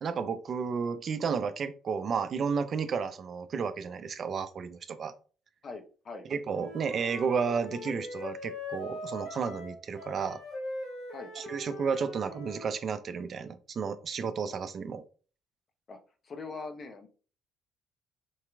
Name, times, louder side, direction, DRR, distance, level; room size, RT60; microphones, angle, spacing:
voice 1, 0.0-5.1 6.3-10.4 11.4-15.0, right 6 dB, 45° right, 11 dB, 0.4 m, -32 dB
voice 2, 5.6-6.3 11.1-11.3 15.9-16.0 16.2-17.1, left 4 dB, 40° left, 6 dB, 0.8 m, -41 dB
Wind instrument woodwind instrument, 6.5-12.7, left 1 dB, 65° left, 1.7 m, -41 dB
4.6 x 2.9 x 2.3 m, 0.38 s
figure-of-eight pair, 45°, 0 cm